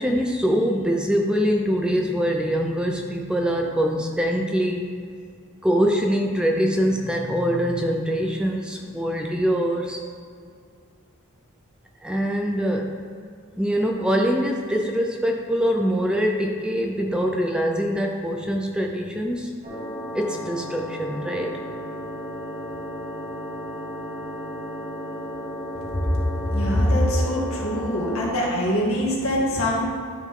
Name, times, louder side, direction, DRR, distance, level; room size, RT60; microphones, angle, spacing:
voice 1, 0.0-5.0 5.6-10.0 12.0-12.9 13.6-19.5 20.1-21.5, equal, 5° right, 1 dB, 0.5 m, -23 dB
sound 1, 19.6-28.3, equal, 35° right, 2.2 m, -34 dB
voice 2, 26.4-29.8, equal, 75° left, -4 dB, 2.1 m, -23 dB
12.5 x 5.3 x 3.8 m, 2.3 s
head